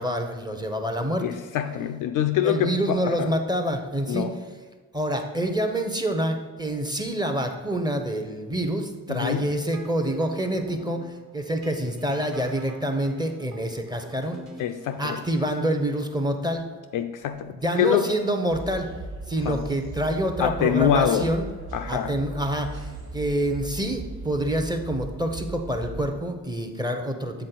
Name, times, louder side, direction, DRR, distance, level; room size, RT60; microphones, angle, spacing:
voice 1, 0.0-1.3 2.4-4.3 4.9-11.1 11.3-14.4 15.0-16.7 17.6-18.9 19.3-21.5 21.9-27.5, right 1 dB, 10° right, 5 dB, 0.7 m, -27 dB
voice 2, 1.2-3.3 4.1-4.4 9.1-9.5 14.6-15.2 16.9-18.1 19.4-19.6 20.4-21.3 21.7-22.1, left 9 dB, 50° left, 6 dB, 0.4 m, -25 dB
sound 1, 9.5-15.3, right 5 dB, 40° right, 1.4 m, -47 dB
sound 2, 18.5-26.1, right 2 dB, 60° right, 1.3 m, -38 dB
7.8 x 3.8 x 3.9 m, 1.4 s
figure-of-eight pair, 45°, 44 cm